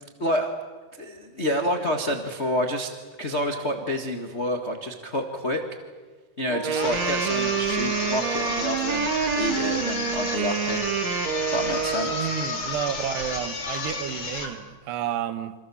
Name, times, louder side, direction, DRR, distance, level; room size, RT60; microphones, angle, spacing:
voice 1, 0.2-0.5 1.0-2.9 3.2-5.6 6.4-9.1 9.3-10.8 11.5-12.3, equal, 75° left, 0.6 m, -28 dB
Wind instrument woodwind instrument, 6.5-12.4, right 7 dB, 55° right, 2.3 m, -27 dB
sound 1, 6.7-14.6, left 4 dB, 35° left, 3.3 m, -32 dB
voice 2, 12.1-15.6, right 10 dB, 85° right, 3.3 m, -31 dB
28.5 x 27.0 x 7.1 m
omnidirectional pair, 4.7 m